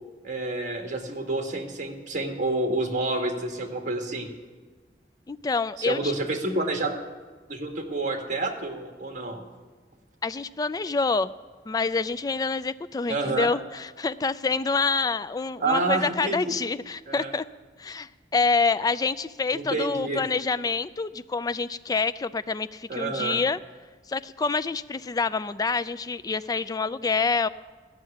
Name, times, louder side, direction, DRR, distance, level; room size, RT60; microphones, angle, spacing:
voice 1, 0.2-4.3 5.8-7.0 7.5-9.4 13.1-13.5 15.6-16.6 17.1-17.3 19.5-20.2 22.9-23.4, right 2 dB, 45° right, 3 dB, 1.6 m, -29 dB
voice 2, 5.3-6.1 10.2-11.4 11.7-17.4 17.8-23.6 24.1-27.5, left 4 dB, 20° left, 14 dB, 0.3 m, -27 dB
14.0 x 6.8 x 10.0 m, 1.5 s
head